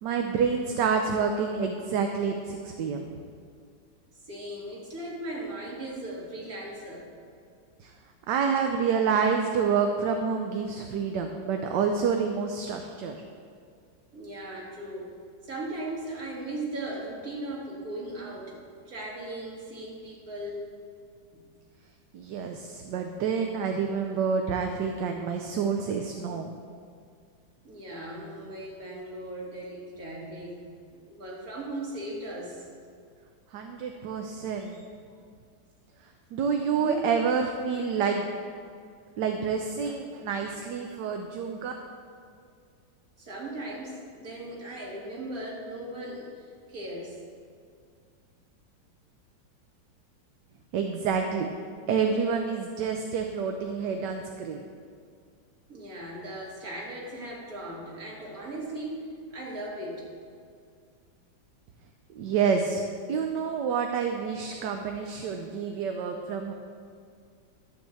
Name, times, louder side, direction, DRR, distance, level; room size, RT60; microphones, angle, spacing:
voice 1, 0.0-3.1 7.8-7.9 8.3-13.2 22.1-26.6 33.5-34.8 36.3-38.3 39.2-41.7 50.7-51.5 51.9-54.6 62.1-62.8 63.1-66.5, right 6 dB, 70° right, 4 dB, 1.2 m, -28 dB
voice 2, 4.3-7.1 14.1-15.1 15.4-18.6 18.9-20.7 21.3-21.4 27.6-30.6 30.9-32.6 36.6-37.1 43.2-47.2 55.7-60.1, right 1 dB, 50° right, -3 dB, 2.4 m, -38 dB
12.5 x 4.6 x 7.6 m, 2.2 s
omnidirectional pair, 2.0 m